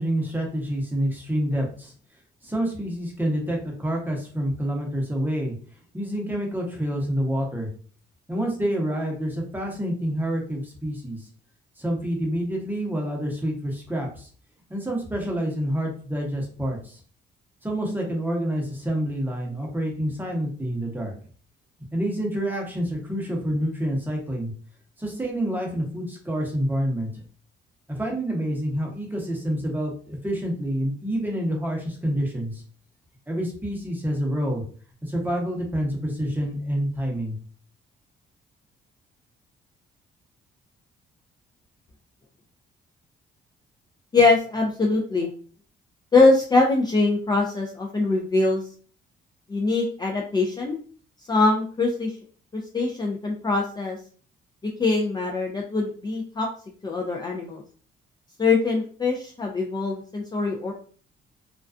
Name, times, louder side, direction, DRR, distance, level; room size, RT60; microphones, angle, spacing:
voice 1, 0.0-1.9 2.4-5.5 5.9-7.7 8.3-11.2 11.8-14.3 14.7-17.0 17.6-21.1 21.9-24.5 25.0-27.2 27.9-32.6 33.3-34.6 35.0-37.4, equal, 10° right, -1 dB, 0.8 m, -27 dB
voice 2, 44.1-45.3 46.1-48.6 49.5-50.8 51.3-52.2 52.5-54.0 54.8-56.5 56.8-57.6 58.4-60.7, left 3 dB, 20° left, 0 dB, 0.4 m, -22 dB
2.3 x 2.2 x 2.4 m, 0.43 s
cardioid pair, 90°, 20 cm